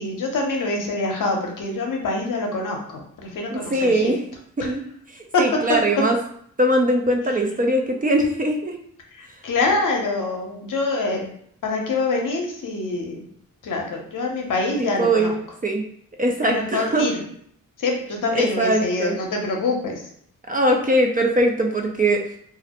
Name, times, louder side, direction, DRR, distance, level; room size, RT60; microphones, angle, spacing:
voice 1, 0.0-4.1 4.6-4.7 5.3-5.4 9.1-11.3 11.6-13.2 13.6-15.3 16.4-17.2 17.8-20.0, left 3 dB, 65° left, 1 dB, 0.7 m, -25 dB
voice 2, 3.5-4.3 4.6-4.8 5.4-6.2 6.6-8.8 14.8-15.8 16.2-17.1 18.3-19.2 20.5-22.3, right 1 dB, 25° right, 2 dB, 0.4 m, -21 dB
2.5 x 2.0 x 2.8 m, 0.64 s
cardioid pair, 65°, 34 cm